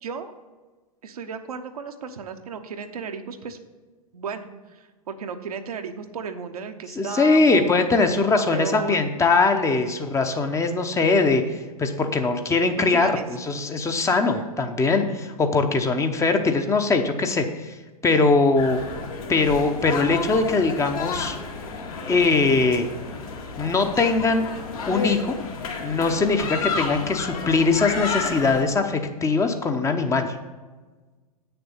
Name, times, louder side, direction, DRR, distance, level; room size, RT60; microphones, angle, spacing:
voice 1, 0.0-0.3 1.0-3.6 4.1-7.7 8.5-9.0 12.9-13.3 14.3-14.5, right 6 dB, 70° right, 6 dB, 0.9 m, -34 dB
voice 2, 7.0-17.7 18.0-18.8 19.3-21.4 22.1-22.9 23.6-24.4 24.9-25.3 25.8-30.3, left 3 dB, 15° left, 6 dB, 0.8 m, -21 dB
sound 1, 18.6-28.6, left 4 dB, 65° left, 2.1 m, -31 dB
8.6 x 6.8 x 5.6 m, 1.3 s
figure-of-eight pair, 100°, 20 cm